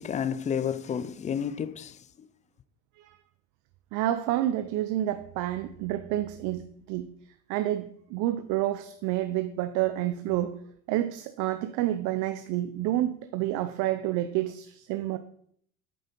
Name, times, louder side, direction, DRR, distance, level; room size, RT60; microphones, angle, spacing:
voice 1, 0.0-2.3, left 8 dB, 20° left, 0.4 m, -31 dB
voice 2, 3.9-7.1 7.5-10.6 10.9-15.2, right 13 dB, 55° right, 0.7 m, -29 dB
8.6 x 7.3 x 5.3 m
supercardioid pair, 115°, 37 cm